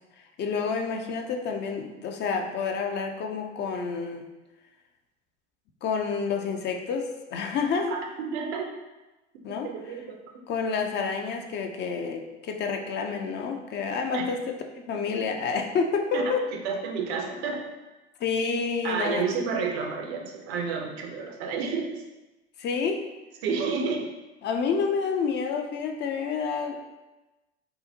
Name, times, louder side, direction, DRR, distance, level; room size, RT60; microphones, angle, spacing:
voice 1, 0.4-4.2 5.8-8.0 9.4-10.0 10.5-14.4 14.9-16.4 18.2-19.3 22.6-23.0 24.4-26.8, left 5 dB, 30° left, 4 dB, 0.5 m, -29 dB
voice 2, 7.9-8.7 9.6-10.2 14.1-14.2 16.1-16.2 16.6-17.6 18.8-21.9 23.4-24.1, right 5 dB, 60° right, 2 dB, 0.7 m, -30 dB
5.4 x 2.1 x 2.7 m, 1.1 s
figure-of-eight pair, 75°, 35 cm